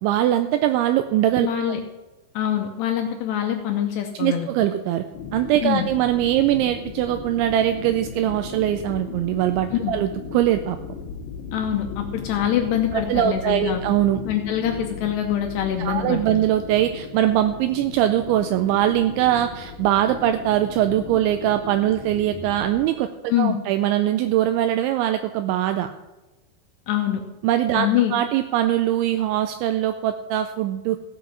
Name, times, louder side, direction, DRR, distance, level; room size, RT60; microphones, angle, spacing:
voice 1, 0.0-1.5 4.2-5.0 5.3-10.8 12.9-14.2 15.8-25.9 27.4-31.0, right 12 dB, 85° right, 8 dB, 2.8 m, -22 dB
voice 2, 1.4-1.8 2.4-4.5 5.6-5.9 9.7-9.9 11.5-13.8 14.3-16.2 23.3-23.6 26.9-27.2 27.7-28.1, left 10 dB, 80° left, 4 dB, 2.5 m, -24 dB
sound 1, 5.1-22.9, left 6 dB, 60° left, 2.2 m, -37 dB
15.5 x 6.8 x 7.3 m, 1.1 s
omnidirectional pair, 5.7 m